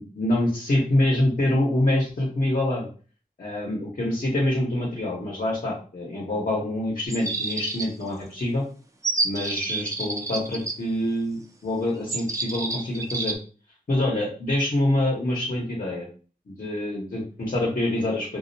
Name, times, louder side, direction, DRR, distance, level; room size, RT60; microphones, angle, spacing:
voice 1, 0.0-2.9 3.4-8.6 9.2-13.3 13.9-16.1 16.5-18.4, left 1 dB, 60° left, -4 dB, 0.9 m, -25 dB
sound 1, 7.1-8.1 9.0-10.7 12.1-13.4, right 3 dB, 20° right, 0.4 m, -29 dB
2.3 x 2.1 x 2.6 m, 0.38 s
cardioid pair, 50°, 15 cm